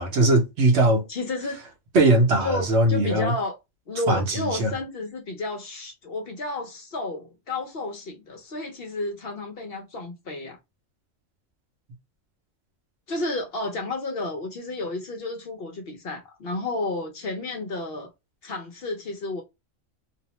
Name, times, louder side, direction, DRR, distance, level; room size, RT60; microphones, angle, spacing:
voice 1, 0.0-1.0 1.9-3.3 4.1-4.7, right 2 dB, 60° right, 1.0 m, -20 dB
voice 2, 1.1-1.6 2.4-3.6 3.9-10.6 13.1-18.1 18.4-19.4, left 2 dB, 55° left, 0.8 m, -31 dB
2.7 x 2.0 x 2.8 m
omnidirectional pair, 1.3 m